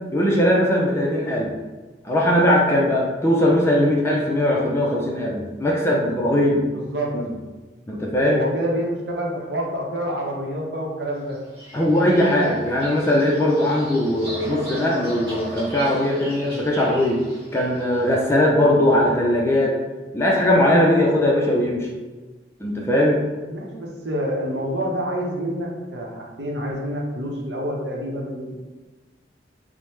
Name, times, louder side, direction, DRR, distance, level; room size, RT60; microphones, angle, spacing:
voice 1, 0.1-1.5 2.0-6.6 7.1-7.3 7.9-8.4 11.7-17.2 17.5-19.8 20.1-21.9 22.6-23.2, left 1 dB, 15° left, -3 dB, 0.4 m, -19 dB
voice 2, 6.7-7.2 8.2-11.4 23.5-28.6, equal, 70° right, -1 dB, 0.7 m, -27 dB
Bird vocalization bird call bird song, 11.3-17.9, right 1 dB, 30° right, 1.0 m, -38 dB
4.7 x 2.1 x 3.1 m, 1.3 s
head